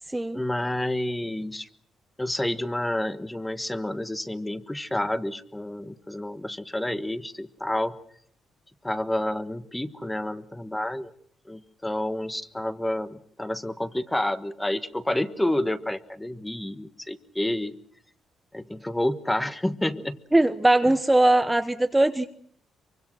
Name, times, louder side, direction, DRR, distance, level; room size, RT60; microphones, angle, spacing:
voice 1, 0.3-1.7 2.2-8.0 8.8-11.1 11.5-17.8 18.5-20.2, left 1 dB, 10° left, 11 dB, 1.4 m, -29 dB
voice 2, 20.3-22.3, right 1 dB, 10° right, 8 dB, 1.0 m, -20 dB
24.5 x 24.0 x 6.3 m, 0.62 s
cardioid pair, 90°, 0 cm